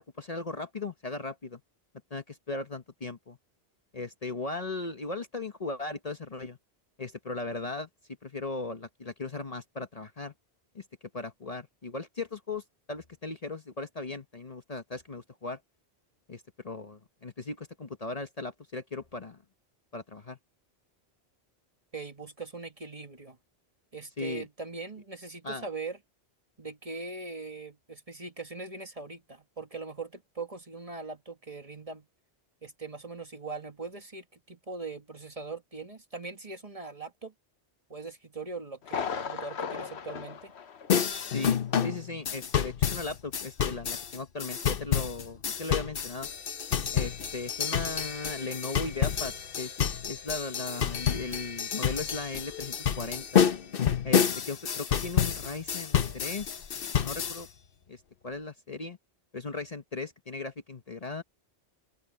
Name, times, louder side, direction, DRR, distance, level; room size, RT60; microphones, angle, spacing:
voice 1, 0.0-1.6 2.1-3.4 3.9-6.6 7.0-7.9 8.2-10.3 10.7-10.8 11.1-15.6 16.3-19.4 19.9-20.4 24.2-24.4 25.4-25.7 41.3-46.3 46.9-53.4 54.0-56.6 56.8-57.5 57.9-59.0 59.3-61.2, left 3 dB, 40° left, 1.0 m, -37 dB
voice 2, 21.9-23.4 23.9-26.0 26.6-32.1 32.6-37.3 37.9-40.5, right 3 dB, 35° right, 1.7 m, -41 dB
Thunder, 38.8-41.4 41.7-41.8 42.3-42.4, left 6 dB, 85° left, 1.3 m, -37 dB
sound 1, 40.9-57.4, left 8 dB, 60° left, 1.0 m, -29 dB
open air
omnidirectional pair, 1.1 m